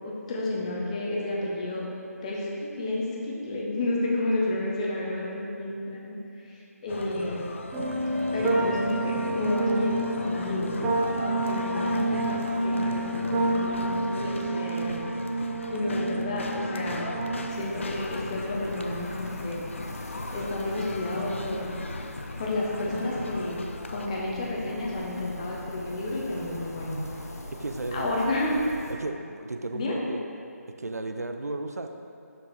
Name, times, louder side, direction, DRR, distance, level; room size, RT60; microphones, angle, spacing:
voice 1, 0.0-1.9 2.2-6.2 6.4-7.5 8.3-10.8 11.1-15.0 15.7-17.1 17.5-19.7 20.3-21.8 22.4-23.6 23.9-27.0 27.9-28.5 29.7-30.0, left 2 dB, 25° left, -4 dB, 1.0 m, -31 dB
sound 1, 6.9-24.1, left 3 dB, 50° left, 0.5 m, -38 dB
sound 2, 7.7-17.6, right 1 dB, 10° right, 0.5 m, -29 dB
sound 3, 17.5-28.9, left 1 dB, 70° left, 0.9 m, -41 dB
voice 2, 27.6-28.2 28.9-30.2 30.8-31.9, right 2 dB, 70° right, 6 dB, 0.6 m, -34 dB
6.1 x 5.6 x 4.7 m, 2.6 s
figure-of-eight pair, 155°, 9 cm